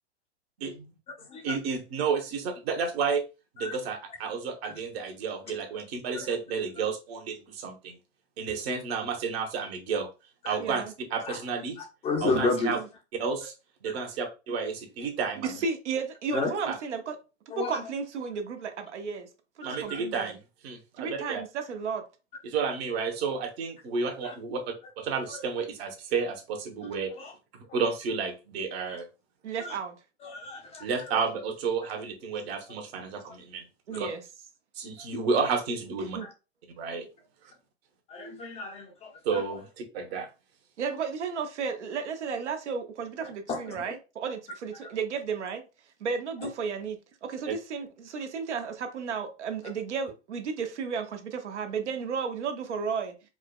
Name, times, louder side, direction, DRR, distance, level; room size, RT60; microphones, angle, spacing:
voice 1, 1.4-3.2 3.5-8.0 8.4-10.1 10.4-10.8 11.1-11.8 12.2-12.8 13.1-13.5 13.8-15.6 16.7-16.8 19.6-20.4 20.6-21.4 22.4-24.6 25.0-27.1 27.7-29.1 30.8-33.6 33.9-34.1 34.8-36.2 36.8-37.1 38.2-38.4 39.2-40.3 47.5-47.6, right 5 dB, 60° right, 1.1 m, -31 dB
voice 2, 10.6-10.9 12.5-12.9 15.4-17.2 17.6-19.3 19.6-20.4 21.0-22.0 29.4-30.0 33.9-34.2 36.1-36.3 40.8-45.6 46.0-53.1, right 5 dB, 85° right, 0.8 m, -33 dB
voice 3, 12.0-12.8 16.3-16.5 17.5-17.7 19.7-19.8 24.2-24.3 27.1-27.3 28.9-29.0 29.6-29.8 30.2-31.2 36.2-36.3 38.1-39.4 43.5-43.8, left 3 dB, 20° left, 0.5 m, -32 dB
4.7 x 2.1 x 2.2 m
hypercardioid pair, 120°, 34 cm